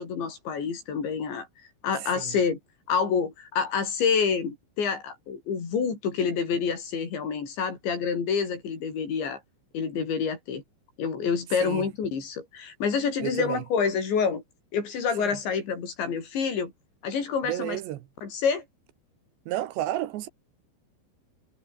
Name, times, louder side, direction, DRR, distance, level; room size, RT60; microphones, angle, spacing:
voice 1, 0.0-1.5 1.8-2.6 2.9-9.4 9.7-10.6 11.0-14.4 14.7-16.7 17.0-17.8 18.2-18.6, left 6 dB, 75° left, 7.6 m, -27 dB
voice 2, 2.0-2.3 11.6-11.9 13.2-13.6 15.2-15.4 17.4-18.1 19.5-20.3, right 14 dB, 75° right, 3.3 m, -32 dB
omnidirectional pair, 5.3 m